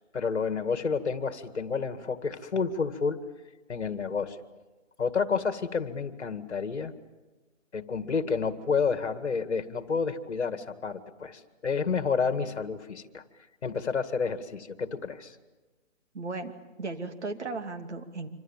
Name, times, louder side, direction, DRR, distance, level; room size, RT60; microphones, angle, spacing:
voice 1, 0.1-3.2 3.7-4.4 5.0-6.9 7.7-13.2 13.6-15.4, left 5 dB, 60° left, 11 dB, 2.1 m, -30 dB
voice 2, 16.1-16.5 16.8-18.3, right 3 dB, 60° right, 6 dB, 2.8 m, -35 dB
26.0 x 26.0 x 7.4 m, 1.2 s
hypercardioid pair, 170°, 38 cm